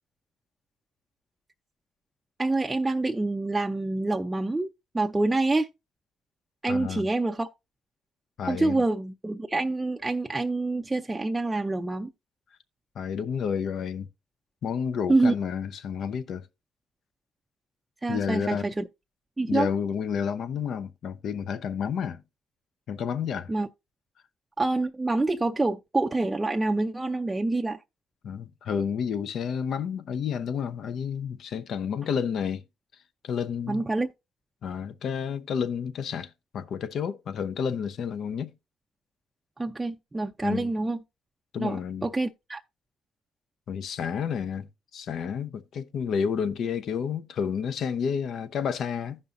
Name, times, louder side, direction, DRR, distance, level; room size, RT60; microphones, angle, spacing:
voice 1, 2.4-5.7 6.6-7.5 8.5-12.1 15.1-15.3 18.0-18.9 19.4-19.7 23.5-23.7 24.6-27.8 33.7-34.1 39.6-41.0 41.6-42.6, right 2 dB, 15° right, 0.5 m, -26 dB
voice 2, 6.7-7.0 8.4-8.8 13.0-14.1 14.6-16.5 18.1-18.7 19.5-22.2 22.9-23.5 28.2-32.6 33.2-33.8 34.6-38.5 40.4-40.7 41.5-42.1 43.7-44.7 44.9-49.2, left 7 dB, 65° left, 0.7 m, -30 dB
15.5 x 5.4 x 2.6 m
cardioid pair, 90°, 0 cm